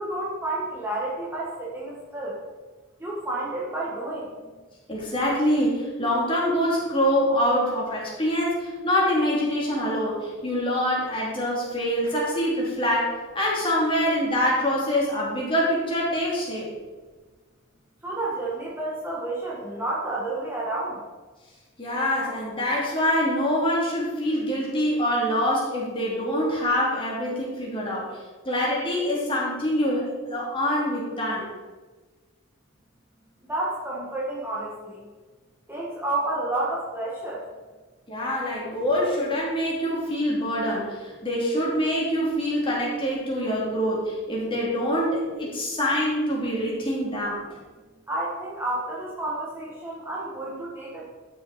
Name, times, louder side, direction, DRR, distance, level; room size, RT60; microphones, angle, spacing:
voice 1, 0.0-2.4 3.0-4.4 18.0-21.0 33.4-35.1 35.7-37.5 48.1-51.1, right 2 dB, 10° right, -6 dB, 1.6 m, -30 dB
voice 2, 4.9-16.7 21.8-28.2 28.4-31.5 38.1-47.4, equal, 25° left, -5 dB, 3.1 m, -25 dB
11.5 x 6.7 x 4.3 m, 1.3 s
head